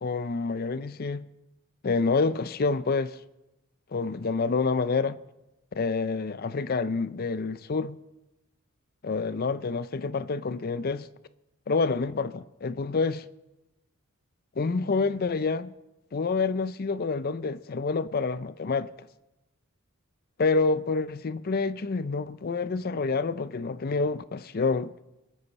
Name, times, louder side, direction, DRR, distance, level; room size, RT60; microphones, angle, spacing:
voice 1, 0.0-1.3 1.8-3.2 3.9-5.2 5.7-8.0 9.0-11.1 11.7-13.3 14.6-15.7 16.1-18.9 20.4-24.9, left 4 dB, 45° left, 0.5 m, -28 dB
26.5 x 8.8 x 4.2 m
head